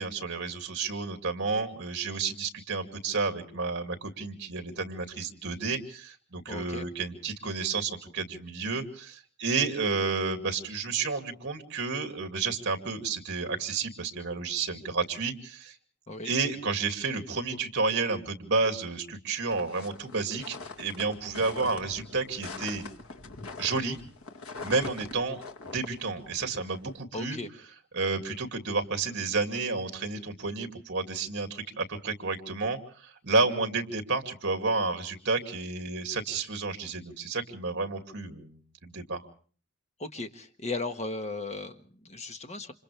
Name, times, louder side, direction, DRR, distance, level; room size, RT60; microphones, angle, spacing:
voice 1, 0.0-15.7 16.2-22.8 23.6-24.0 24.6-25.4 25.7-27.4 27.9-39.3, right 4 dB, 55° right, 5 dB, 2.6 m, -31 dB
voice 2, 6.5-6.9 16.1-16.3 27.1-27.5 40.0-42.7, left 2 dB, 30° left, 7 dB, 1.4 m, -36 dB
sound 1, 19.5-27.0, left 3 dB, 85° left, 1.9 m, -43 dB
29.5 x 27.0 x 3.4 m, 0.44 s
head